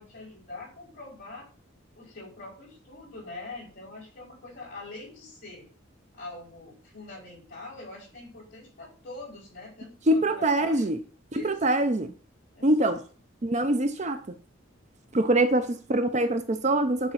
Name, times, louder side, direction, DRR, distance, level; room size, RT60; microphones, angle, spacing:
voice 1, 0.0-1.5 1.9-5.7 6.1-10.9 11.3-11.9 12.5-13.0 15.6-15.7, left 2 dB, 45° left, 5.1 m, -44 dB
voice 2, 10.1-11.0 11.3-12.1 12.6-13.0 13.4-14.2 15.1-17.1, right 1 dB, 35° right, 0.6 m, -24 dB
9.7 x 3.7 x 5.8 m
head